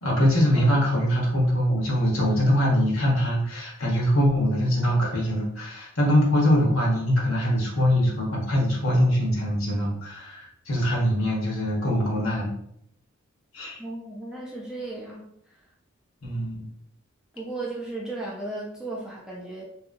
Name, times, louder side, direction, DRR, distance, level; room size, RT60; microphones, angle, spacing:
voice 1, 0.0-12.5 13.5-13.8 16.2-16.7, equal, 70° left, -3 dB, 1.0 m, -23 dB
voice 2, 13.8-15.3 17.3-19.6, right 2 dB, 5° right, -4 dB, 0.5 m, -35 dB
2.8 x 2.7 x 2.5 m, 0.72 s
head